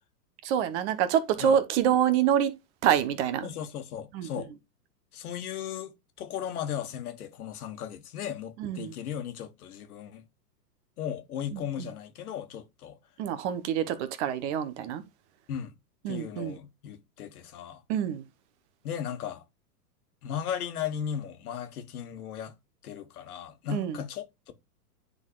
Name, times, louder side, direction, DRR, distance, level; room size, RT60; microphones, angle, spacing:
voice 1, 0.4-2.5 2.8-3.5 4.1-4.3 8.6-8.9 11.5-11.9 13.2-15.0 16.0-16.6 17.9-18.2 23.7-24.0, right 9 dB, 45° right, 1.1 m, -26 dB
voice 2, 3.4-4.5 5.1-10.2 11.0-13.0 15.5-15.7 16.1-17.8 18.8-19.4 20.2-22.5 22.8-24.5, left 9 dB, 65° left, 1.4 m, -36 dB
10.0 x 3.9 x 2.4 m
hypercardioid pair, 120°, 48 cm